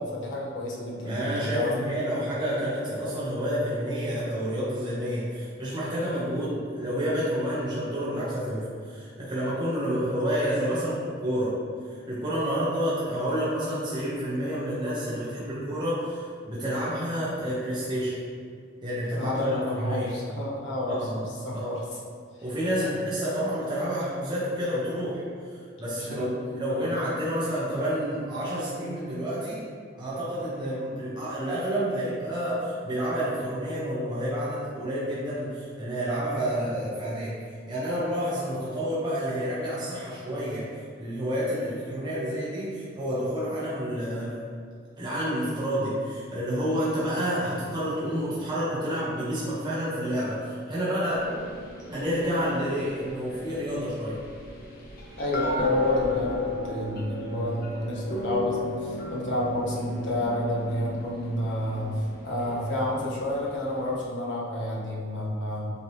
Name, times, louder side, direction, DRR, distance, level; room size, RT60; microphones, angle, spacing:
voice 1, 0.0-1.7 19.1-21.2 21.4-21.8 22.8-22.9 26.0-26.9 55.2-65.7, left 1 dB, 70° left, -5 dB, 1.3 m, -30 dB
voice 2, 1.0-11.6 11.9-18.2 18.8-19.6 19.9-20.1 21.0-21.2 21.5-21.7 22.4-29.6 29.9-37.3 37.7-44.4 45.0-51.3 51.9-54.2, equal, 25° right, -9 dB, 1.2 m, -29 dB
sound 1, 51.1-64.0, left 3 dB, 50° left, 1.0 m, -34 dB
8.1 x 3.8 x 3.1 m, 2.2 s
head